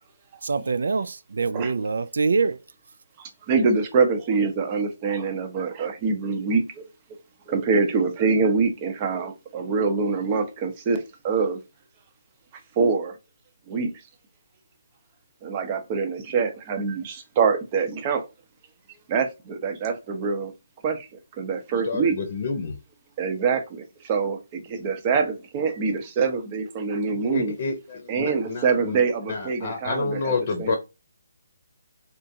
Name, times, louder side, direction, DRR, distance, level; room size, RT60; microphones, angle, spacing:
voice 1, 0.4-2.6, right 4 dB, 65° right, 0.3 m, -24 dB
voice 2, 3.2-6.8 7.5-11.6 12.8-13.1 13.7-13.9 15.4-18.2 19.1-20.5 20.8-22.1 23.2-27.5 28.1-30.2 30.6-30.8, right 5 dB, 30° right, 0.7 m, -25 dB
voice 3, 21.8-22.8 27.1-29.0 29.3-30.8, left 4 dB, 45° left, 0.8 m, -29 dB
3.6 x 2.4 x 2.7 m
figure-of-eight pair, 150°, 0 cm